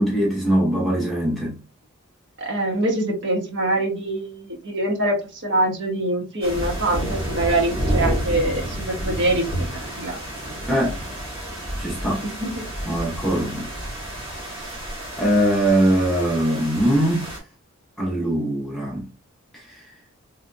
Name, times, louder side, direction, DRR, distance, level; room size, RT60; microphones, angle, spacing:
voice 1, 0.0-1.6 10.7-11.0 11.8-12.2 12.8-13.7 14.3-14.8 15.2-17.3 18.0-19.0 19.5-19.8, right 1 dB, ahead, 1.0 m, -22 dB
voice 2, 2.4-10.2 12.2-12.6, right 1 dB, 50° right, 1.1 m, -24 dB
sound 1, 6.4-17.4, right 1 dB, 25° right, 1.5 m, -30 dB
3.7 x 3.2 x 2.5 m
head